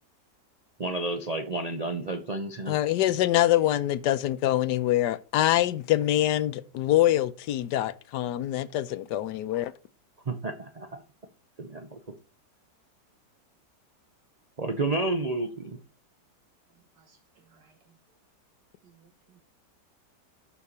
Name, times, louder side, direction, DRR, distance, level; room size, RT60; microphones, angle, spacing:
voice 1, 0.8-2.8 10.3-11.0 11.6-12.0 14.6-15.8, right 2 dB, 50° right, 0.4 m, -31 dB
voice 2, 2.7-9.7, left 13 dB, 75° left, 1.2 m, -25 dB
voice 3, 17.0-17.7 18.8-19.1 19.3-19.4, right 6 dB, 75° right, 1.9 m, -61 dB
11.5 x 5.7 x 4.2 m
omnidirectional pair, 1.9 m